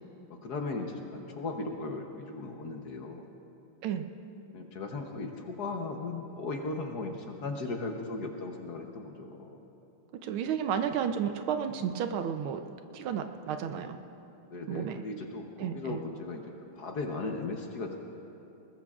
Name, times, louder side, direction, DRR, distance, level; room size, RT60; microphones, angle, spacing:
voice 1, 0.3-3.3 4.5-9.6 14.5-16.4 16.7-18.0, left 3 dB, 55° left, 3 dB, 1.3 m, -37 dB
voice 2, 10.2-12.6 12.9-14.0 14.7-15.0 15.6-16.0, right 8 dB, 80° right, 7 dB, 1.5 m, -32 dB
20.5 x 20.5 x 2.4 m, 2.9 s
omnidirectional pair, 2.3 m